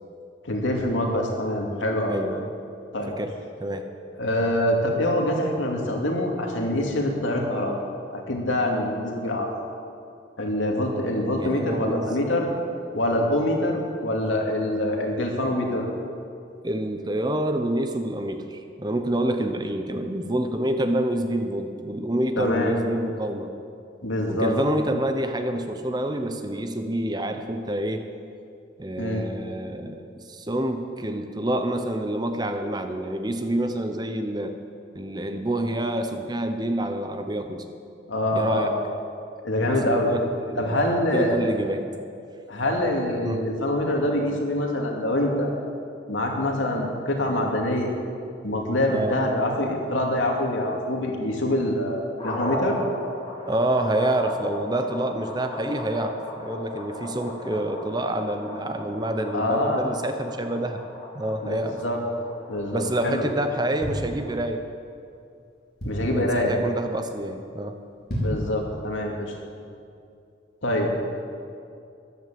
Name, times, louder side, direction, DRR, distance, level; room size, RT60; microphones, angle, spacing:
voice 1, 0.4-2.2 2.9-3.1 4.2-7.8 8.1-9.5 10.4-12.5 12.9-15.9 22.4-22.8 24.0-24.5 29.0-29.2 38.1-38.8 39.4-40.1 40.5-41.4 42.5-45.5 46.1-47.9 48.4-52.8 59.3-59.8 61.4-62.0 62.5-63.2 65.8-66.6 68.2-69.3 70.6-71.0, left 1 dB, 85° left, 1 dB, 2.5 m, -25 dB
voice 2, 2.1-4.3 11.4-12.1 16.6-23.5 24.3-28.1 28.8-34.5 34.9-37.6 38.3-38.7 39.3-40.8 41.1-41.9 43.2-43.5 48.9-49.2 53.4-60.8 61.1-61.8 62.7-64.6 66.1-67.8, right 1 dB, 20° right, 7 dB, 0.8 m, -28 dB
sound 1, 52.2-64.4, left 1 dB, 25° left, 4.3 m, -36 dB
sound 2, 63.8-64.8 65.3-65.4 65.5-66.3 66.7-67.0 67.3-67.4 67.9-68.5 69.0-69.1, equal, 50° left, 4.4 m, -31 dB
14.0 x 11.0 x 7.6 m, 2.5 s
head